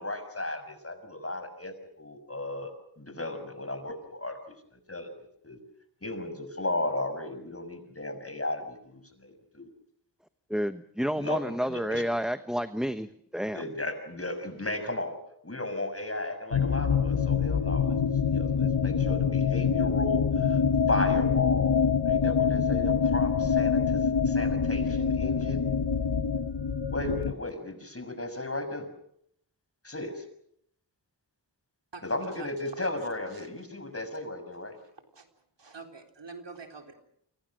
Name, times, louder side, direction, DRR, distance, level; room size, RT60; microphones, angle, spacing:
voice 1, 0.0-4.4 4.9-5.6 6.0-9.7 11.2-12.0 13.5-15.2 15.4-18.0 18.3-20.6 20.9-25.6 26.9-28.9 29.8-30.2 32.0-34.8, left 2 dB, 35° left, 9 dB, 6.3 m, -35 dB
voice 2, 10.5-13.1 13.3-13.6, equal, ahead, 10 dB, 1.1 m, -30 dB
sound 1, 16.5-27.3, left 6 dB, 75° left, 1.2 m, -25 dB
voice 3, 32.3-32.8 33.3-33.8 34.8-35.3 35.6-36.9, right 4 dB, 85° right, 4 dB, 3.8 m, -47 dB
30.0 x 25.0 x 6.4 m, 0.70 s
wide cardioid pair, 55°, 42 cm